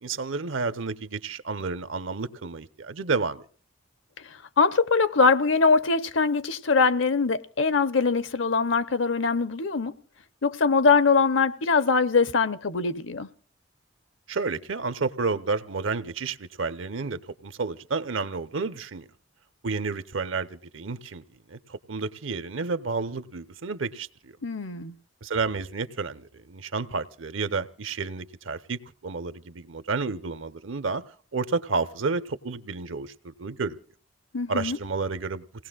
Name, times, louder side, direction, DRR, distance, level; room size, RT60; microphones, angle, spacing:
voice 1, 0.0-3.4 14.3-19.0 19.6-21.2 21.5-24.4 25.2-31.0 31.3-33.8 34.5-35.4, right 4 dB, 80° right, 0.8 m, -31 dB
voice 2, 4.6-9.9 10.4-13.3 24.4-24.9 34.3-34.8, left 4 dB, 70° left, 0.8 m, -22 dB
28.5 x 18.0 x 2.4 m
head